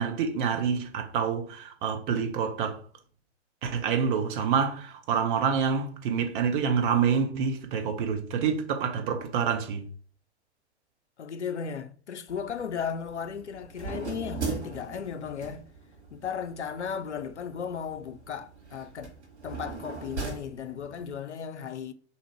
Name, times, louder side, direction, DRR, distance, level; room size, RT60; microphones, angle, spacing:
voice 1, 0.0-2.8 3.6-9.9, right 6 dB, 45° right, 0.9 m, -27 dB
voice 2, 11.2-15.6 16.1-19.1 19.4-21.9, left 7 dB, 85° left, 0.5 m, -35 dB
sound 1, 12.3-21.2, right 4 dB, 80° right, 1.6 m, -40 dB
3.8 x 3.0 x 4.3 m
figure-of-eight pair, 105°, 34 cm